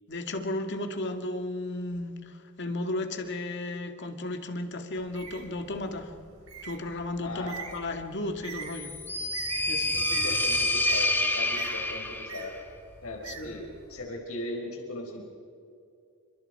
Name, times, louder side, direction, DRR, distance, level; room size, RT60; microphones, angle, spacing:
voice 1, 0.1-6.1 6.6-8.9 9.7-9.9 13.3-13.5, left 2 dB, 55° left, 6 dB, 2.2 m, -34 dB
Bird, 5.0-14.0, right 5 dB, 80° right, 4.6 m, -45 dB
voice 2, 7.2-7.7 9.9-12.6 13.0-15.2, left 1 dB, 85° left, 1 dB, 4.6 m, -38 dB
sound 1, 8.7-12.4, left 2 dB, 10° left, 1.8 m, -28 dB
29.5 x 26.5 x 4.8 m, 2.5 s
head